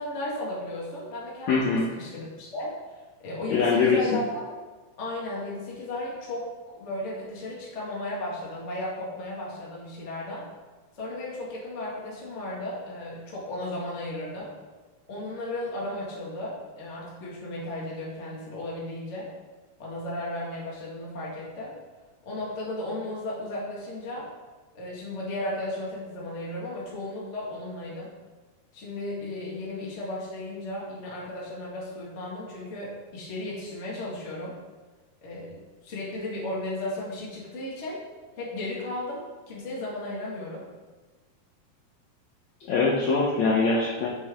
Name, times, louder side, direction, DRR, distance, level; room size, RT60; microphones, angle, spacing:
voice 1, 0.0-4.4 5.0-10.4 10.9-14.5 15.1-19.3 19.8-21.7 22.2-24.3 24.7-28.1 28.7-34.6 35.2-38.0 38.4-39.2 39.5-40.7, left 1 dB, 40° left, -5 dB, 1.0 m, -35 dB
voice 2, 1.5-1.9 3.5-4.0 42.7-44.1, left 4 dB, 85° left, -4 dB, 1.6 m, -22 dB
9.1 x 6.1 x 3.7 m, 1.3 s
omnidirectional pair, 4.6 m